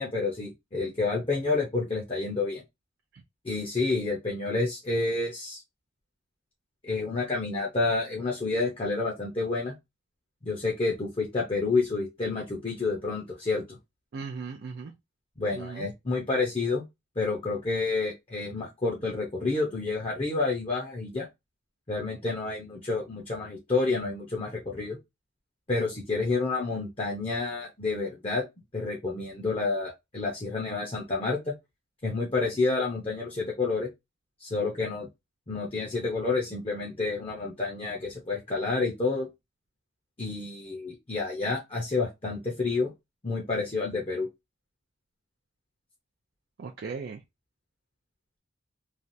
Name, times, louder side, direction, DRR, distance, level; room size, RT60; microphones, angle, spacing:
voice 1, 0.0-2.6 3.4-5.6 6.8-9.7 10.4-13.8 15.4-16.9 17.2-21.3 21.9-25.0 25.7-28.4 28.7-31.5 32.0-33.9 34.4-35.1 35.5-39.3 40.2-42.9 43.2-44.3, left 3 dB, 30° left, 0.7 m, -29 dB
voice 2, 14.1-14.9 15.5-15.9 46.6-47.2, right 5 dB, 50° right, 0.4 m, -37 dB
3.2 x 2.4 x 2.6 m
head